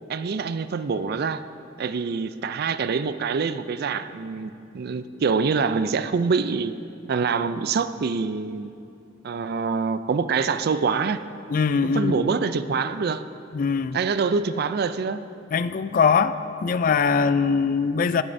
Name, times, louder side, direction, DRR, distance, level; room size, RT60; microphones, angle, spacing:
voice 1, 0.1-1.4 1.8-6.7 7.1-8.7 9.2-11.2 11.8-13.2 13.9-15.2, right 5 dB, 55° right, 13 dB, 0.4 m, -25 dB
voice 2, 11.5-12.2 13.5-14.0 15.5-18.2, left 5 dB, 45° left, 13 dB, 0.3 m, -22 dB
19.0 x 9.7 x 2.6 m, 2.6 s
head